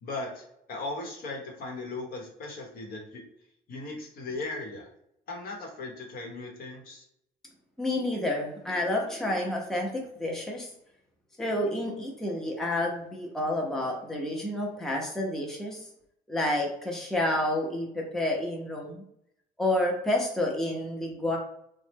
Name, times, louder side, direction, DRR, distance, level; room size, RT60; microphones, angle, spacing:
voice 1, 0.0-3.2 3.7-4.9 5.3-7.1, left 2 dB, 60° left, 1 dB, 1.0 m, -38 dB
voice 2, 7.8-10.7 11.4-15.9 16.3-19.0 19.6-21.4, left 1 dB, ahead, -1 dB, 0.6 m, -29 dB
2.9 x 2.1 x 3.4 m, 0.77 s
cardioid pair, 110°, 17 cm